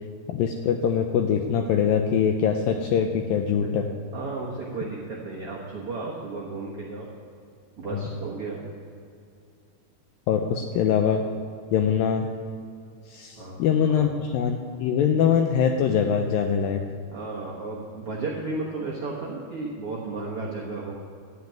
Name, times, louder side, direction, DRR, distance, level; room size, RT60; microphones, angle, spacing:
voice 1, 0.3-3.9 10.3-11.2 11.7-12.3 13.1-16.8, left 7 dB, 80° left, 4 dB, 2.1 m, -23 dB
voice 2, 4.1-7.1 7.8-8.6 13.3-13.6 13.9-14.1 17.1-20.9, right 3 dB, 65° right, -5 dB, 1.4 m, -33 dB
13.0 x 6.0 x 8.8 m, 2.4 s
omnidirectional pair, 4.7 m